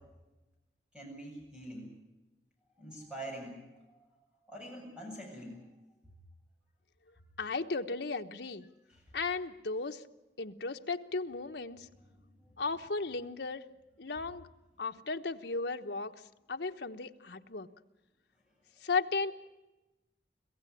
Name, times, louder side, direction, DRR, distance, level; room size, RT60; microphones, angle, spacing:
voice 1, 0.9-1.9 2.8-3.6 3.9-4.0 4.5-5.6 8.9-9.0, right 1 dB, 5° right, -1 dB, 8.0 m, -44 dB
voice 2, 7.4-8.7 9.1-10.0 10.4-11.9 12.6-13.6 14.0-14.5 14.8-16.1 16.5-17.7 18.8-19.3, left 4 dB, 80° left, 6 dB, 1.1 m, -35 dB
26.0 x 16.0 x 9.8 m, 1.0 s
head